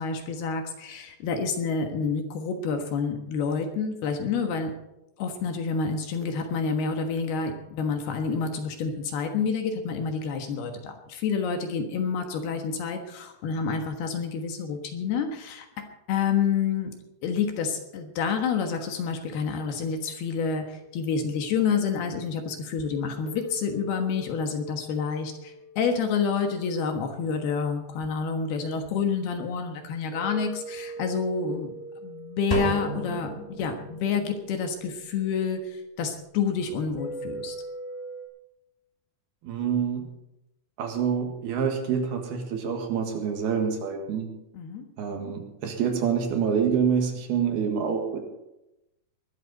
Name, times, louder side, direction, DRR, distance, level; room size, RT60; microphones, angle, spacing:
voice 1, 0.0-4.7 5.2-16.9 17.2-31.7 32.0-37.6 44.5-44.8, left 5 dB, 65° left, 5 dB, 3.1 m, -28 dB
sound 1, 23.3-28.7 30.1-35.6 37.0-38.3, right 1 dB, 35° left, 4.4 m, -43 dB
sound 2, 32.5-34.3, equal, 15° left, 1.4 m, -32 dB
voice 2, 39.4-40.1 40.8-44.3 45.0-48.2, right 7 dB, 65° right, 3 dB, 3.5 m, -27 dB
21.0 x 12.5 x 4.1 m, 0.91 s
omnidirectional pair, 5.2 m